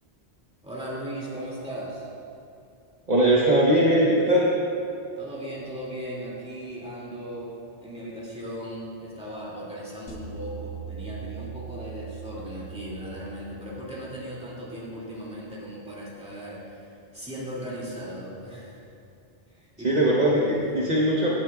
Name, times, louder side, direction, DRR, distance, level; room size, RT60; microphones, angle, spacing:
voice 1, 0.6-2.1 5.2-7.5 7.8-18.8 19.5-20.0 20.3-20.6, equal, 5° right, -6 dB, 2.3 m, -37 dB
voice 2, 3.1-4.5 19.8-20.4 20.7-21.3, right 1 dB, 45° right, -5 dB, 1.1 m, -20 dB
sound 1, 10.1-14.4, right 8 dB, 75° left, 1.2 m, -41 dB
16.0 x 9.5 x 2.3 m, 2.6 s
omnidirectional pair, 1.1 m